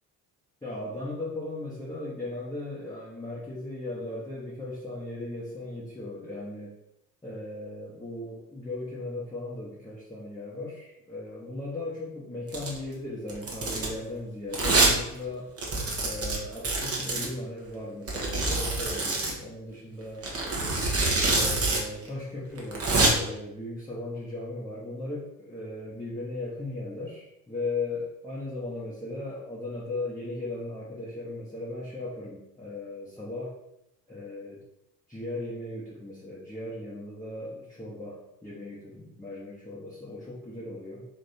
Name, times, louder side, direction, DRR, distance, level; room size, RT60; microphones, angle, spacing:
voice 1, 0.6-6.7 7.2-15.5 16.0-20.3 21.2-33.5 34.1-34.6 35.1-41.1, left 2 dB, 5° left, -7 dB, 1.1 m, -37 dB
Domestic sounds home sounds, 12.5-12.8 13.3-13.9 14.5-14.9 15.2-15.3 15.6-17.3 18.1-19.3 20.2-21.8 22.1-22.2 22.6-23.1, right 2 dB, 30° right, 1.2 m, -25 dB
3.5 x 3.2 x 4.1 m, 0.82 s
figure-of-eight pair, 60°, 50 cm